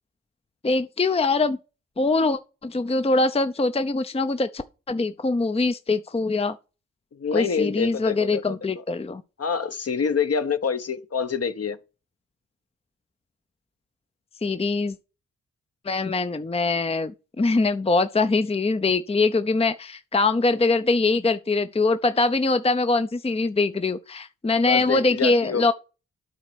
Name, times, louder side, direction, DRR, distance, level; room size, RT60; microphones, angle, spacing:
voice 1, 0.6-1.6 2.0-6.6 7.3-9.2 14.4-15.0 15.8-25.7, left 3 dB, 20° left, 0.7 m, -23 dB
voice 2, 7.1-8.4 9.4-11.8 24.6-25.6, left 6 dB, 45° left, 1.1 m, -26 dB
9.2 x 4.1 x 6.3 m
supercardioid pair, 40°, 33 cm